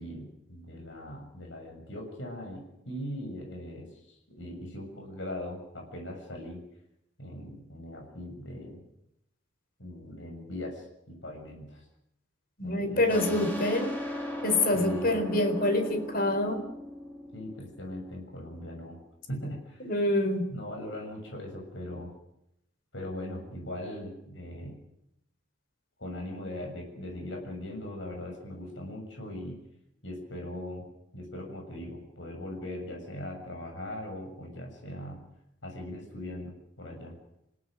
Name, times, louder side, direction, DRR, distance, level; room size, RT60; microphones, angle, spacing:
voice 1, 0.0-3.9 4.4-6.6 7.2-8.8 9.8-11.8 12.6-13.4 14.7-15.2 17.3-19.0 19.3-19.9 20.5-22.1 22.9-24.8 26.0-29.6 30.0-30.9 31.1-35.2 35.6-37.1, left 1 dB, 80° left, 2 dB, 7.1 m, -40 dB
voice 2, 12.6-13.9 14.4-16.6 19.8-20.5, left 1 dB, 50° left, 8 dB, 4.1 m, -26 dB
sound 1, 13.1-18.4, left 1 dB, 10° left, 6.7 m, -38 dB
27.5 x 17.5 x 7.7 m, 0.79 s
head